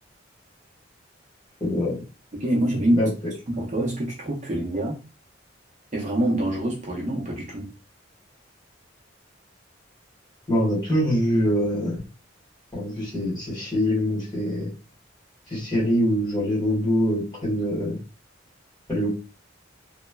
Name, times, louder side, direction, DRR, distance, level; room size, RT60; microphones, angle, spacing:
voice 1, 1.6-2.0 2.9-3.1 10.5-12.0 12.7-14.7 15.5-18.0 18.9-19.2, equal, 20° left, 1.4 m, -24 dB
voice 2, 2.3-3.1 3.5-5.0 5.9-7.7, right 1 dB, 40° right, 0.6 m, -25 dB
3.0 x 2.1 x 2.2 m
head